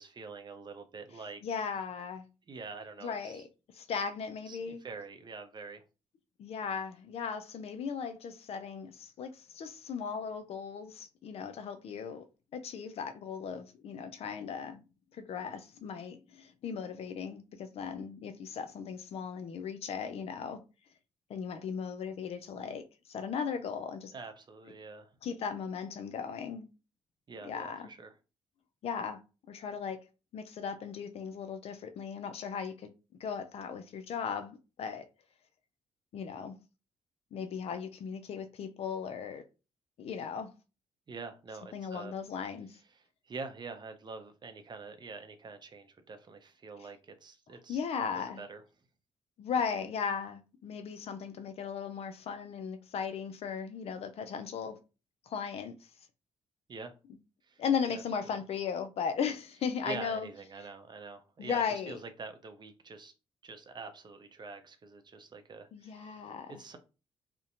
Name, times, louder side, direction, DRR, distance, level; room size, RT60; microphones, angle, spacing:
voice 1, 0.0-1.4 2.5-3.4 4.5-5.8 24.1-25.1 27.3-28.1 41.1-42.1 43.3-47.8 48.4-48.6 56.7-56.9 57.5-58.4 59.8-63.1 63.4-66.3 66.6-66.8, right 4 dB, 40° right, 0.6 m, -45 dB
voice 2, 1.4-2.3 3.0-3.5 3.7-4.8 6.4-12.3 12.5-14.8 15.1-20.6 21.3-24.1 25.2-26.7 27.4-27.9 28.8-29.2 29.5-30.0 30.3-32.9 33.2-35.1 36.1-36.6 37.3-39.4 40.0-40.5 41.7-42.8 46.8-46.9 47.7-48.4 49.4-54.8 55.3-55.7 57.6-60.3 61.4-62.0 65.7-66.5, left 6 dB, 60° left, 0.4 m, -37 dB
2.7 x 2.1 x 2.5 m
supercardioid pair, 60°, 12 cm